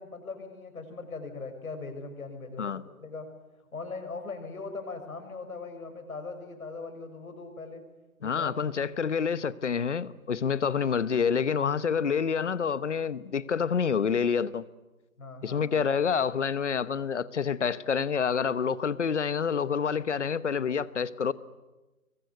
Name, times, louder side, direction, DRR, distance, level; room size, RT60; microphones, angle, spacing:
voice 1, 0.0-3.3 3.7-7.8 8.2-8.6 15.2-15.8, left 3 dB, 70° left, 6.4 m, -40 dB
voice 2, 8.2-14.6 15.4-21.3, left 6 dB, 55° left, 1.1 m, -28 dB
25.5 x 23.0 x 9.4 m
hypercardioid pair, 165°, 44 cm